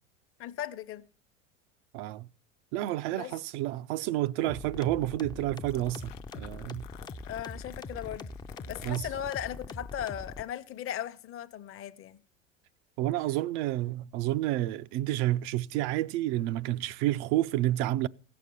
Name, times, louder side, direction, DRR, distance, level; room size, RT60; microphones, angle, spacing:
voice 1, 0.4-1.0 3.1-3.3 7.2-8.3 8.7-12.2, left 10 dB, 35° left, 0.8 m, -37 dB
voice 2, 1.9-2.3 2.7-6.9 8.8-9.1 13.0-18.1, right 15 dB, 65° right, 0.6 m, -30 dB
sound 1, 4.4-10.4, left 3 dB, 10° left, 0.5 m, -42 dB
sound 2, 5.5-10.8, left 14 dB, 80° left, 0.6 m, -53 dB
16.0 x 6.7 x 5.4 m
hypercardioid pair, 85°, 38 cm